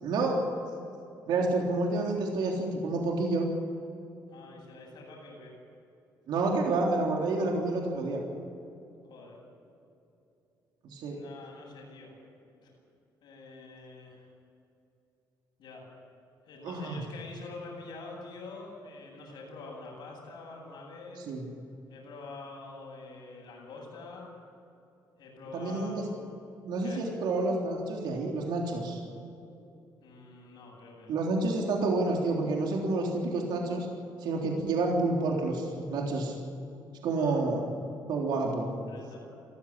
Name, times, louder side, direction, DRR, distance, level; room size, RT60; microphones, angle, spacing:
voice 1, 0.0-0.4 1.3-3.5 6.3-8.2 10.8-11.2 16.6-17.0 21.3-21.4 25.5-26.0 26.6-29.0 31.1-33.9 34.2-36.3 37.0-37.6 38.1-38.7, right 3 dB, 75° right, 0 dB, 3.6 m, -29 dB
voice 2, 4.3-5.5 9.1-9.4 11.1-12.2 12.5-12.7 13.2-14.3 15.6-15.8 16.4-21.2 21.9-24.3 25.1-26.2 26.8-27.1 30.0-31.2 37.2-37.4 38.8-39.2, left 3 dB, 75° left, -7 dB, 7.7 m, -46 dB
22.5 x 14.5 x 9.9 m, 2.8 s
cardioid pair, 90°, 8 cm